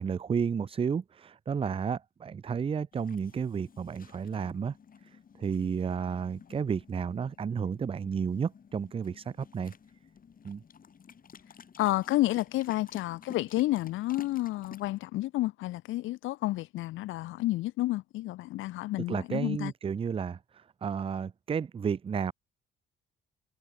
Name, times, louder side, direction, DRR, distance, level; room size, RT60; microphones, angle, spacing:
voice 1, 0.0-4.7 5.4-9.7 10.4-10.6 19.1-22.3, right 6 dB, 30° right, 0.4 m, -32 dB
sound 1, 2.9-15.0, left 7 dB, 45° left, 3.9 m, -52 dB
voice 2, 11.8-19.7, left 17 dB, 85° left, 0.6 m, -30 dB
cardioid pair, 90°, 20 cm